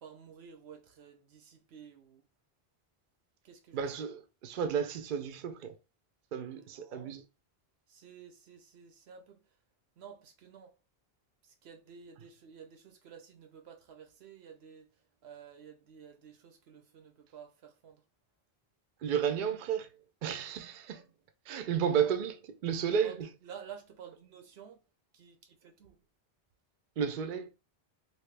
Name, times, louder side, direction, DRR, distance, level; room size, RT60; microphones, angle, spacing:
voice 1, 0.0-2.2 3.4-3.8 6.5-7.2 7.9-9.6 10.0-10.8 11.4-14.9 15.2-18.0 21.9-22.1 23.0-24.8 25.1-26.0, right 7 dB, 90° right, 1.0 m, -52 dB
voice 2, 3.7-5.8 6.3-7.2 19.0-20.0 20.2-21.1 21.5-22.4 22.6-23.3 27.0-27.5, right 7 dB, 60° right, 0.6 m, -32 dB
3.0 x 2.7 x 3.3 m
omnidirectional pair, 1.1 m